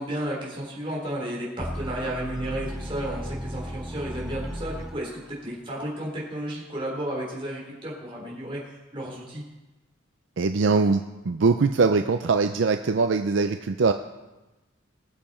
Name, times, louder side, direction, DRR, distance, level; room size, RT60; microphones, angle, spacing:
voice 1, 0.0-9.4, right 1 dB, 25° right, -4 dB, 3.9 m, -33 dB
sound 1, 1.6-5.4, equal, 5° right, 0.3 m, -35 dB
voice 2, 10.4-13.9, right 4 dB, 65° right, 7 dB, 0.5 m, -22 dB
21.5 x 7.5 x 4.4 m, 1.1 s
head